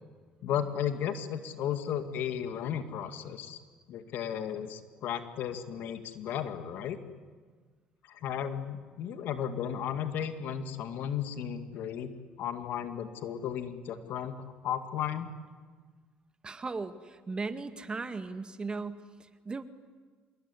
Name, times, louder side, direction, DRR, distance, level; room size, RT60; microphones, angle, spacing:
voice 1, 0.4-3.6 3.9-7.0 8.0-12.1 12.4-14.3 14.6-15.3, left 9 dB, 70° left, 9 dB, 2.3 m, -34 dB
voice 2, 16.4-19.6, right 4 dB, 25° right, 9 dB, 2.0 m, -37 dB
26.5 x 21.5 x 9.9 m, 1.5 s
supercardioid pair, 85°, 3 cm